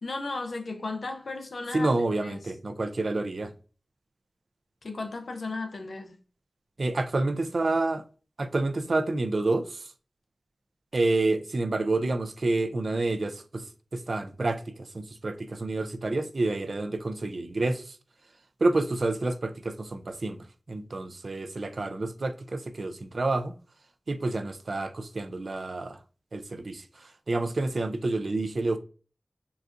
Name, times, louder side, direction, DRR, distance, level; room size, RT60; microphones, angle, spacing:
voice 1, 0.0-1.9 2.2-2.4 4.8-6.2, left 3 dB, 85° left, 0.5 m, -35 dB
voice 2, 1.7-3.5 6.8-8.0 8.4-9.9 10.9-18.0 18.6-23.6 24.1-26.0 26.3-28.8, right 2 dB, 70° right, 0.4 m, -29 dB
3.9 x 2.4 x 2.4 m
wide cardioid pair, 60°, 0 cm